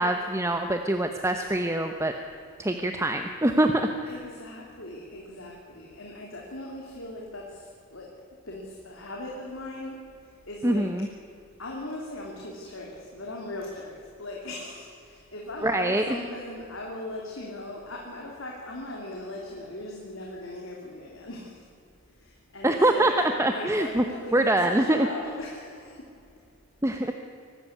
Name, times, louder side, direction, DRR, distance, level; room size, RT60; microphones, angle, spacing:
voice 1, 0.0-2.1 2.6-3.9 10.6-11.1 15.6-16.0 22.6-24.0 24.3-25.1 26.8-27.1, right 1 dB, 15° right, 6 dB, 0.8 m, -24 dB
voice 2, 4.1-8.1 8.5-11.1 11.6-21.6 22.2-26.1, left 1 dB, 65° left, -1 dB, 3.0 m, -39 dB
23.0 x 13.0 x 9.7 m, 2.5 s
head